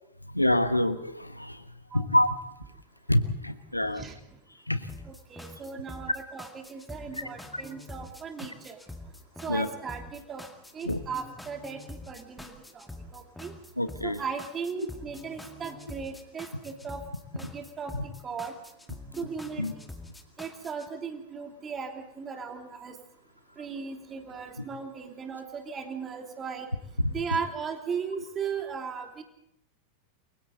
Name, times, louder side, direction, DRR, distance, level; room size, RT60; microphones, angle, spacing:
voice 1, 0.3-1.7 1.9-2.3 3.1-4.0 4.7-4.9 7.5-7.6 9.5-9.7 10.8-11.0 13.8-14.2 17.9-18.0 19.6-19.7 24.6-24.7 27.0-27.4, left 1 dB, 85° left, 11 dB, 1.1 m, -26 dB
sound 1, 4.9-20.9, left 2 dB, 5° left, 2.1 m, -45 dB
voice 2, 5.0-8.8 9.4-10.5 10.7-12.8 13.1-13.5 14.0-17.0 17.3-17.9 18.2-18.5 19.2-19.7 20.4-22.9 23.6-26.7 27.1-29.2, right 6 dB, 20° right, 4 dB, 3.1 m, -37 dB
28.5 x 23.0 x 4.0 m, 0.77 s
figure-of-eight pair, 90°, 0 cm